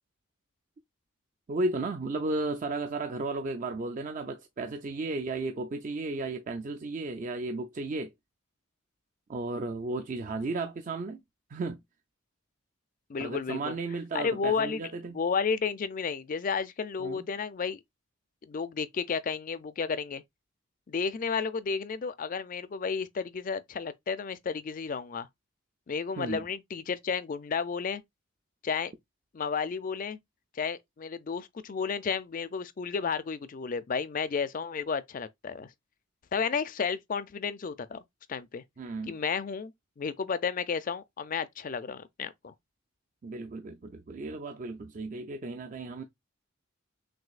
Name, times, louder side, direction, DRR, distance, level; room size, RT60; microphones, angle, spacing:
voice 1, 1.5-8.1 9.3-11.2 11.5-11.8 13.2-15.2 17.0-17.3 26.2-26.4 38.8-39.2 43.2-46.0, right 3 dB, 40° right, 0.4 m, -34 dB
voice 2, 13.1-13.7 14.1-14.8 15.1-17.8 18.5-20.2 20.9-25.3 25.9-28.0 28.6-28.9 29.3-30.2 30.6-35.7 36.3-38.0 38.3-38.6 39.1-42.5, left 5 dB, 40° left, 0.4 m, -32 dB
6.1 x 2.6 x 2.4 m
head